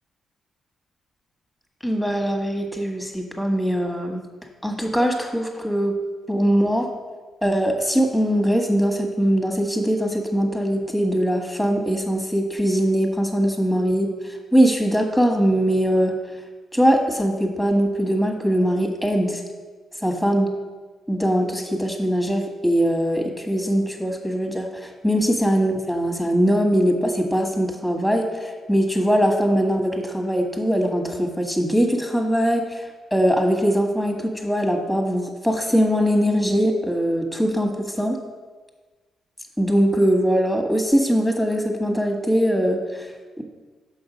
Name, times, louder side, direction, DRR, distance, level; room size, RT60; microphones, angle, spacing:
voice 1, 1.8-4.3 4.6-6.0 6.3-6.9 7.4-16.2 16.7-19.4 20.0-20.5 21.1-32.8 33.1-38.2 39.6-43.1 43.4-43.5, equal, ahead, 3 dB, 1.7 m, -21 dB
6.2 x 5.8 x 5.2 m, 1.3 s
hypercardioid pair, 45°, 0 cm